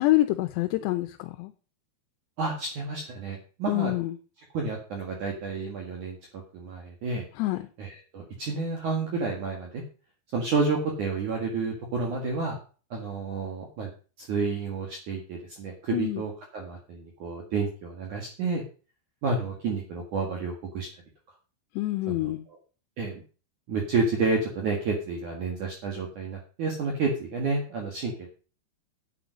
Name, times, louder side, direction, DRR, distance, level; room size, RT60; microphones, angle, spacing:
voice 1, 0.0-1.5 3.7-4.2 7.4-7.7 15.9-16.2 21.8-22.5, left 17 dB, 80° left, 2.8 m, -26 dB
voice 2, 2.4-3.9 4.5-7.2 7.8-9.8 10.3-12.6 12.9-13.9 14.2-18.6 19.2-20.9 22.1-22.3 23.0-23.2 23.7-28.3, right 4 dB, 55° right, 2.8 m, -30 dB
9.3 x 8.7 x 5.2 m
omnidirectional pair, 5.1 m